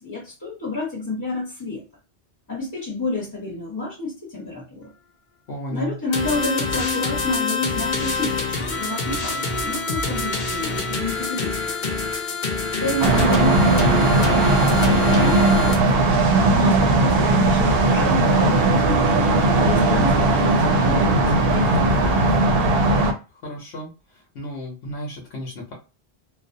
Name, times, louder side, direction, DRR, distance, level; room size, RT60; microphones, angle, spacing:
voice 1, 0.0-1.8 2.5-4.9 5.7-12.0 12.8-16.1 16.4-19.3 19.6-22.7, left 2 dB, 20° left, -4 dB, 0.8 m, -30 dB
voice 2, 5.5-6.0 23.4-23.9 24.3-25.7, equal, 80° left, -1 dB, 1.0 m, -33 dB
sound 1, 6.1-15.7, left 4 dB, 55° left, 0.7 m, -26 dB
sound 2, 13.0-23.1, right 2 dB, 65° right, 0.7 m, -18 dB
2.5 x 2.0 x 2.6 m, 0.31 s
omnidirectional pair, 1.1 m